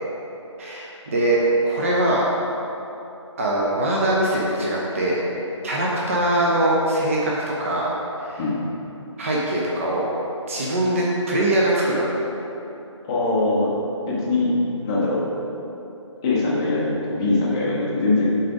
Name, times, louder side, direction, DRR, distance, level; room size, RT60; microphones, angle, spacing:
voice 1, 0.6-2.2 3.4-5.2 5.6-7.9 8.2-8.4 9.2-10.1 10.5-12.1, right 1 dB, 25° right, -4 dB, 0.7 m, -22 dB
voice 2, 13.0-13.7 14.1-14.6 14.8-15.2 16.2-18.2, left 2 dB, 10° left, -6 dB, 0.7 m, -22 dB
7.4 x 4.0 x 4.8 m, 2.9 s
figure-of-eight pair, 150°, 16 cm